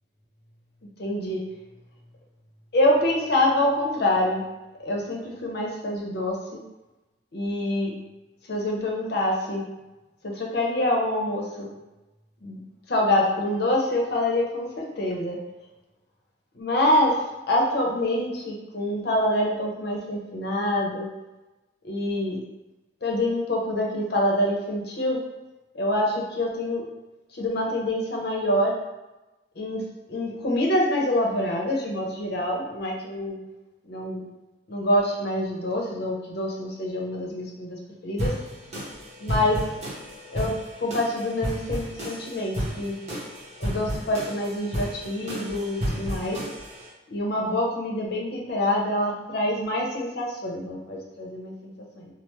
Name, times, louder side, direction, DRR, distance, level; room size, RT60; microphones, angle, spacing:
voice 1, 1.0-1.4 2.7-4.4 4.8-6.6 7.3-7.9 8.5-9.6 10.2-11.7 12.4-12.6 12.9-15.4 16.5-17.2 17.5-21.1 21.8-22.4 23.0-25.2 25.7-26.8 27.3-28.7 29.6-29.8 30.1-33.4 33.9-34.2 34.7-38.3 39.2-39.6 40.3-40.5 40.8-42.9 43.6-46.4 47.1-52.1, left 1 dB, 65° left, -1 dB, 0.7 m, -26 dB
sound 1, 38.2-46.9, equal, 40° right, 0.9 m, -33 dB
3.1 x 2.0 x 3.1 m, 1.0 s
head